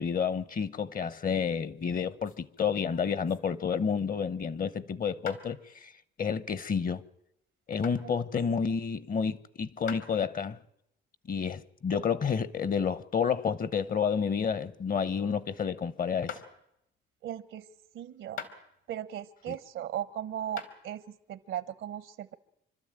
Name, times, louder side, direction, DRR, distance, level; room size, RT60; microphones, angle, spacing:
voice 1, 0.0-5.9 6.2-7.0 7.7-10.6 11.3-16.4 19.5-19.6, left 6 dB, 45° left, 1.0 m, -30 dB
sound 1, 2.0-3.9 5.3-5.4 7.8-8.0 9.9-10.1 13.3-14.7 15.0-15.4 16.3-16.5 18.4-19.0 19.5-20.0 20.6-20.7, left 7 dB, 75° left, 2.7 m, -44 dB
voice 2, 17.2-17.7 17.9-18.4 18.9-22.3, right 11 dB, 80° right, 1.2 m, -37 dB
26.5 x 12.5 x 9.0 m
cardioid pair, 90°, 20 cm